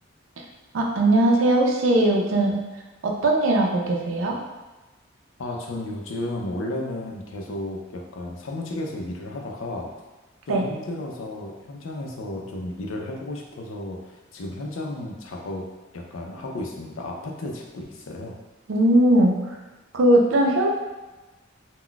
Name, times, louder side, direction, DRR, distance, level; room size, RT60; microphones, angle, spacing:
voice 1, 0.7-2.6 3.0-4.4 10.5-10.6 18.7-19.4 19.9-20.7, right 1 dB, 80° right, 1 dB, 0.5 m, -19 dB
voice 2, 5.4-9.9 10.5-15.7 15.9-18.4, left 1 dB, 85° left, 1 dB, 0.5 m, -33 dB
3.8 x 2.2 x 2.2 m, 1.1 s
head